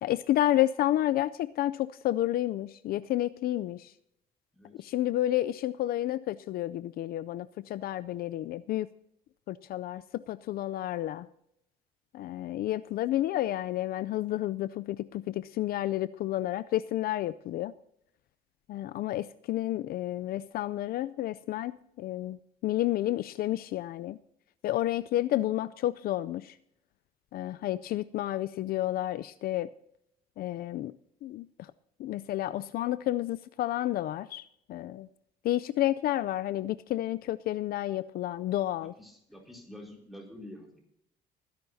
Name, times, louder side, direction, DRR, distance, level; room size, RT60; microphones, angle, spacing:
voice 1, 0.0-3.9 4.8-8.9 9.5-11.3 12.1-17.7 18.7-24.2 24.6-26.6 27.3-29.7 30.4-30.9 31.2-31.7 32.0-34.4 34.7-35.1 35.4-38.9, left 14 dB, 65° left, 15 dB, 0.4 m, -30 dB
voice 2, 4.5-4.9 38.8-40.8, left 1 dB, ahead, 0 dB, 4.4 m, -48 dB
21.0 x 10.5 x 2.7 m, 0.76 s
cardioid pair, 110°, 17 cm